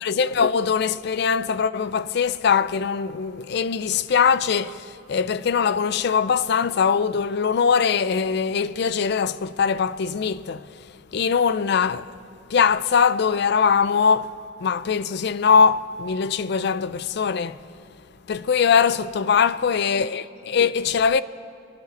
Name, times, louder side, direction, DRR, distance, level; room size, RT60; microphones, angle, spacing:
voice 1, 0.0-10.7 11.1-12.1 12.5-14.3 14.6-17.6 18.3-21.2, left 6 dB, 60° left, 0.4 m, -21 dB
26.0 x 10.5 x 4.1 m
head